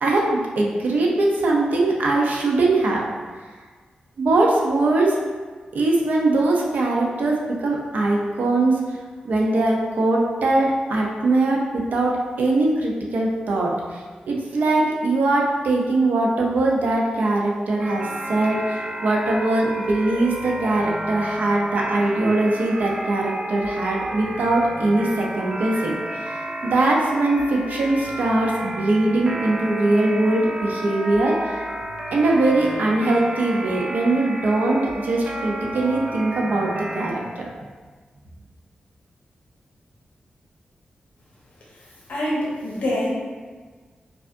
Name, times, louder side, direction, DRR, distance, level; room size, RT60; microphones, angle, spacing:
voice 1, 0.0-3.1 4.2-5.2 5.7-8.8 9.2-25.9 26.2-31.5 32.1-37.5, right 2 dB, 75° right, -2 dB, 0.6 m, -21 dB
sound 1, 17.8-37.1, right 1 dB, 30° right, 0.4 m, -32 dB
voice 2, 42.1-43.1, left 1 dB, 70° left, -4 dB, 0.9 m, -25 dB
4.7 x 2.4 x 2.6 m, 1.4 s
wide cardioid pair, 160°, 3 cm